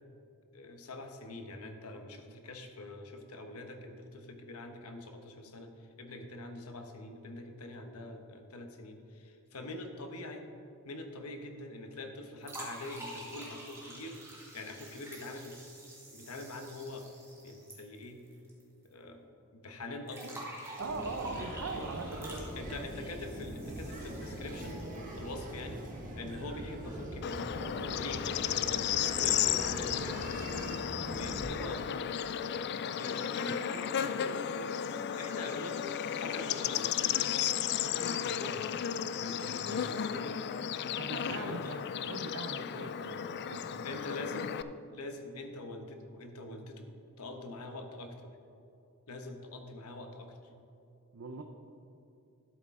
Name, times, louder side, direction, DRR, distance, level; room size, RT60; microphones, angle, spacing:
voice 1, 0.5-10.4 10.8-14.2 14.5-15.6 16.1-17.1 17.4-18.2 18.8-19.3 19.5-20.4 22.5-24.8 25.2-25.8 26.1-27.5 27.9-30.7 31.2-32.1 32.6-34.7 35.2-37.4 37.8-38.6 39.2-40.4 41.2-41.7 43.8-44.5 44.9-46.9 47.2-48.3 49.1-50.4, left 2 dB, 85° left, 5 dB, 1.0 m, -44 dB
sound 1, 12.4-18.6 18.9-19.0 20.1-25.1, right 1 dB, 10° right, 2.0 m, -48 dB
sound 2, 20.8-31.4, right 1 dB, 40° right, 1.5 m, -42 dB
voice 2, 20.8-22.5 39.9-40.1 41.0-44.2 51.1-51.4, right 3 dB, 65° right, 4 dB, 0.6 m, -41 dB
Bird / Insect, 27.2-44.6, left 9 dB, 50° left, 0.3 m, -34 dB
12.0 x 8.2 x 3.7 m, 2.6 s
head